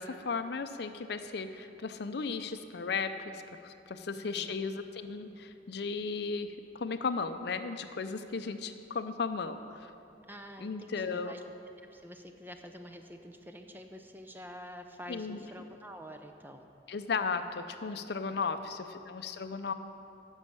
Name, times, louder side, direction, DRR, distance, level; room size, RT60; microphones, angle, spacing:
voice 1, 0.0-9.9 10.6-11.3 15.1-15.4 16.9-19.7, left 4 dB, 60° left, 9 dB, 0.5 m, -35 dB
voice 2, 4.1-4.5 10.3-11.4 11.9-16.7, equal, 10° right, 5 dB, 0.5 m, -47 dB
10.5 x 6.3 x 7.1 m, 2.7 s
head